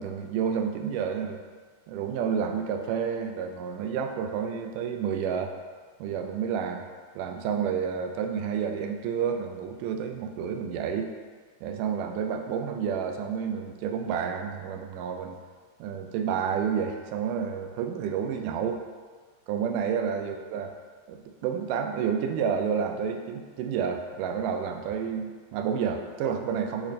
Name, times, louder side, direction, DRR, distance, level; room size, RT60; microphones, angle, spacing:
voice 1, 0.0-1.4 1.9-5.5 6.0-6.9 7.2-11.1 11.6-15.4 15.8-18.8 19.5-20.7 21.1-26.9, right 7 dB, 90° right, 5 dB, 2.2 m, -30 dB
8.6 x 3.2 x 4.1 m, 1.5 s
omnidirectional pair, 3.7 m